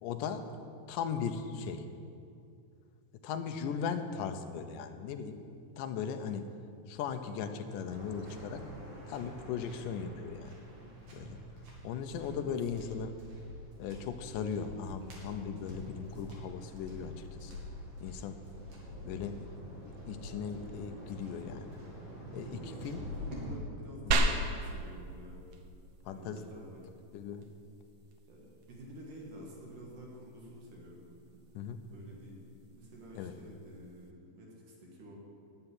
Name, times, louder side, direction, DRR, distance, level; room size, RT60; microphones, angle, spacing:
voice 1, 0.0-0.5 0.9-1.9 3.2-5.4 5.8-6.5 6.9-8.7 9.1-10.6 11.1-11.4 11.8-13.2 13.8-17.6 18.0-18.5 19.1-19.4 20.1-21.7 22.3-23.1 26.1-26.4 27.1-27.4 31.6-31.8 33.2-33.3, left 6 dB, 75° left, 7 dB, 2.2 m, -38 dB
Waves surf, 7.8-23.6, equal, 45° right, 3.3 m, -46 dB
voice 2, 22.5-25.4 26.1-26.9 28.3-31.0 31.3-31.5 31.9-32.4 32.7-35.2, equal, 65° right, -2 dB, 3.3 m, -50 dB
sound 1, 24.1-34.1, right 2 dB, 90° right, 1.3 m, -38 dB
13.0 x 6.8 x 9.9 m, 2.5 s
omnidirectional pair, 4.1 m